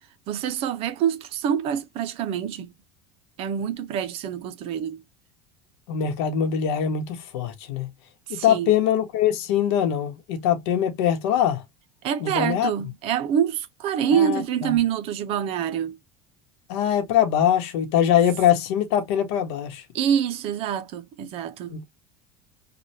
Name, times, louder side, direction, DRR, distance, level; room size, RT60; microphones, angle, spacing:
voice 1, 0.3-2.7 3.4-5.0 8.3-8.7 12.0-16.0 19.9-21.8, right 9 dB, 45° right, 0.5 m, -26 dB
voice 2, 5.9-7.9 8.4-11.6 12.2-12.7 14.1-14.8 16.7-19.8 21.7-21.8, left 9 dB, 80° left, 1.0 m, -22 dB
3.3 x 2.3 x 2.8 m
cardioid pair, 145°, 14 cm